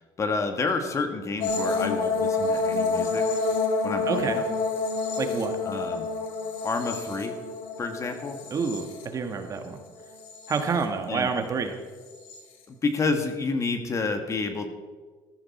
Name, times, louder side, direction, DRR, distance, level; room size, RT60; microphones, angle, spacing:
voice 1, 0.2-3.3 3.8-4.5 5.6-6.1 6.6-7.3 7.8-8.4 11.1-11.3 12.7-14.7, left 4 dB, 35° left, 6 dB, 1.7 m, -29 dB
sound 1, 1.4-9.6 10.0-10.8 12.1-12.4, left 3 dB, 85° left, 2.2 m, -28 dB
voice 2, 4.1-4.4 5.2-5.6 8.5-9.8 10.5-11.8, right 5 dB, 40° right, 7 dB, 1.4 m, -28 dB
14.0 x 13.5 x 4.3 m, 1.5 s
cardioid pair, 100°, 9 cm